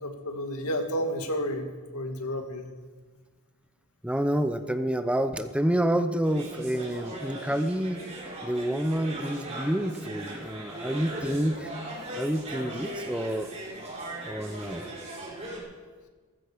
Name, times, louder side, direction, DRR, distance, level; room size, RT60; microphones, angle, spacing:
voice 1, 0.0-2.7, equal, 80° left, 4 dB, 2.2 m, -31 dB
voice 2, 4.0-8.0 8.4-11.7 12.1-13.5 14.2-14.8, right 1 dB, 5° right, 8 dB, 0.7 m, -28 dB
sound 1, 6.2-15.6, right 1 dB, 30° right, 5.7 m, -39 dB
18.0 x 15.0 x 5.1 m, 1.4 s
head